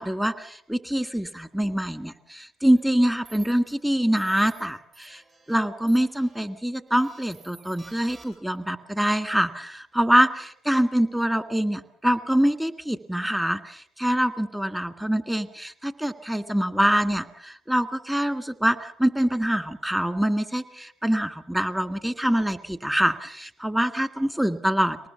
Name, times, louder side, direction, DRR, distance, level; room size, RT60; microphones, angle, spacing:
voice 1, 0.0-5.2 5.5-25.1, equal, 10° right, 11 dB, 1.7 m, -25 dB
sound 1, 2.7-2.8 3.3-3.7 4.2-4.6 4.9-5.5 5.9-6.4 7.0-8.6, right 3 dB, 45° right, 7.9 m, -51 dB
23.5 x 19.5 x 7.0 m, 0.67 s
supercardioid pair, 70°, 0 cm